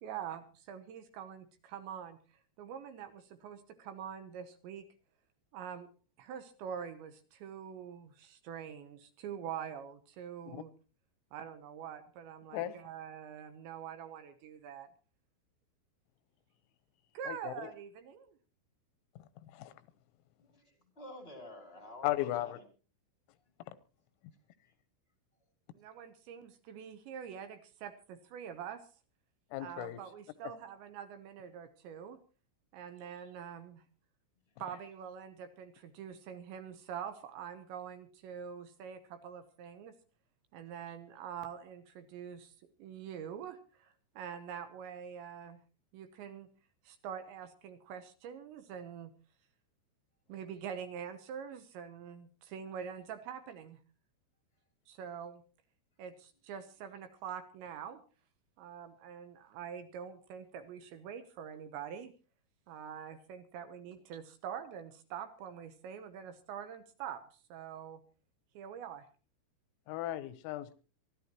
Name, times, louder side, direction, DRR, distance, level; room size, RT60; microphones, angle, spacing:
voice 1, 0.0-4.9 5.5-5.9 6.2-10.7 11.3-14.9 17.1-18.4 25.7-28.8 29.6-32.2 32.7-33.8 34.6-39.9 40.5-42.5 42.8-45.6 45.9-46.5 46.8-49.1 50.3-53.8 54.9-55.4 56.0-58.0 58.6-62.1 62.7-68.0 68.5-69.1, right 8 dB, 75° right, 2.9 m, -45 dB
voice 2, 17.3-17.7 19.5-19.7 22.0-22.6 29.5-30.0 30.4-30.5 69.9-70.7, left 15 dB, 90° left, 3.7 m, -36 dB
voice 3, 20.4-22.7 24.6-24.7, left 1 dB, 25° left, 1.3 m, -50 dB
24.0 x 13.5 x 3.0 m
omnidirectional pair, 5.9 m